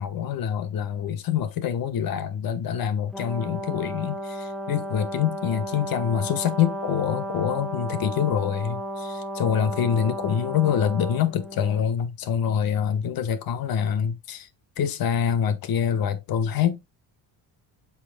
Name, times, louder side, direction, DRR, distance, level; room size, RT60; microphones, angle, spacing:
voice 1, 0.0-14.5 14.8-16.8, left 8 dB, 50° left, 1.1 m, -25 dB
Brass instrument, 3.1-11.8, right 1 dB, ahead, 0.6 m, -34 dB
8.2 x 5.8 x 2.2 m
cardioid pair, 165°, 44 cm